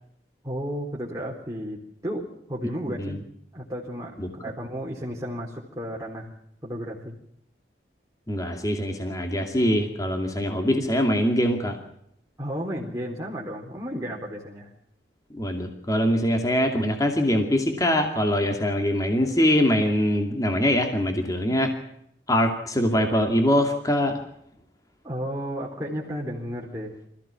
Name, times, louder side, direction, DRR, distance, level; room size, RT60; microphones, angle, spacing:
voice 1, 0.4-3.2 3.5-6.3 6.6-7.2 12.4-14.7 25.0-27.1, equal, 20° right, -3 dB, 4.0 m, -33 dB
voice 2, 8.3-11.8 15.3-21.7 22.3-24.2, equal, 20° left, 4 dB, 2.5 m, -23 dB
26.0 x 15.5 x 7.4 m, 0.75 s
head